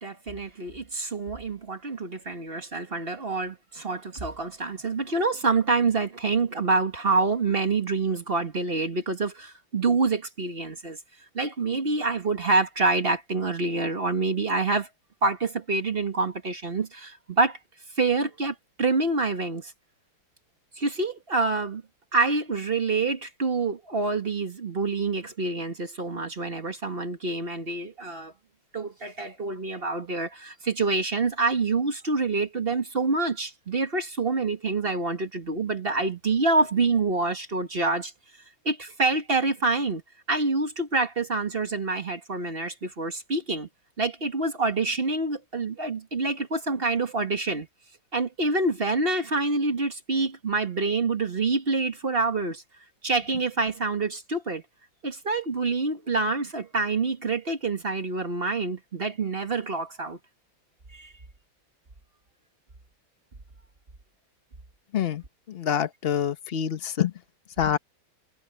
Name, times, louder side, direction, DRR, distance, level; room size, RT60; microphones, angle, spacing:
voice 1, 0.0-11.0 11.3-14.9 15.2-17.6 18.0-19.7 20.7-21.8 22.1-28.3 28.7-38.1 38.6-40.0 40.3-43.7 44.0-47.7 48.1-52.6 53.0-54.6 55.0-60.2 60.9-61.1, right 3 dB, 30° right, 1.6 m, -26 dB
voice 2, 65.5-67.1 67.6-67.8, left 9 dB, 45° left, 0.8 m, -26 dB
omnidirectional pair, 2.2 m